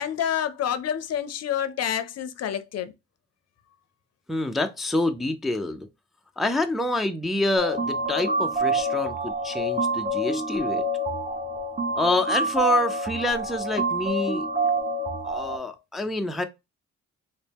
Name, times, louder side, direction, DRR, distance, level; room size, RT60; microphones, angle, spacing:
voice 1, 0.0-2.9, left 9 dB, 55° left, 0.6 m, -28 dB
voice 2, 4.3-5.9 6.4-10.8 11.9-14.5 15.2-16.4, left 2 dB, ahead, 0.4 m, -27 dB
sound 1, 7.6-15.6, right 2 dB, 25° right, 0.9 m, -27 dB
4.0 x 2.1 x 3.4 m
cardioid pair, 90°, 30 cm